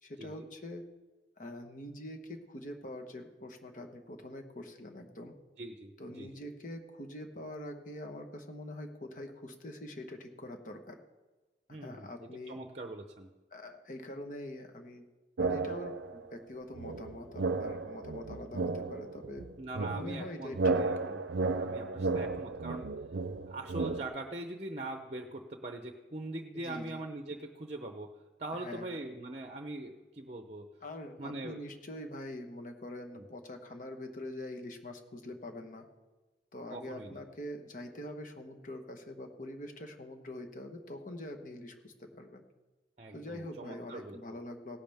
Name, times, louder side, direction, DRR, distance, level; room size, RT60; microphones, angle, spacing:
voice 1, 0.0-0.8 1.4-5.3 6.0-11.0 11.7-12.6 13.5-15.1 15.4-19.4 19.9-20.8 26.5-27.0 28.6-29.0 30.8-35.9 36.5-42.4 43.1-44.8, left 1 dB, 45° left, 4 dB, 1.2 m, -44 dB
voice 2, 5.6-6.3 11.7-13.3 19.6-21.2 21.6-22.9 23.5-28.1 28.4-30.7 31.2-31.6 33.1-33.2 36.7-37.2 43.0-44.2, right 2 dB, 35° right, 5 dB, 0.7 m, -42 dB
sound 1, 15.4-16.2 16.8-24.0, right 3 dB, 85° right, 0.6 m, -34 dB
17.5 x 11.0 x 3.5 m, 1.2 s
head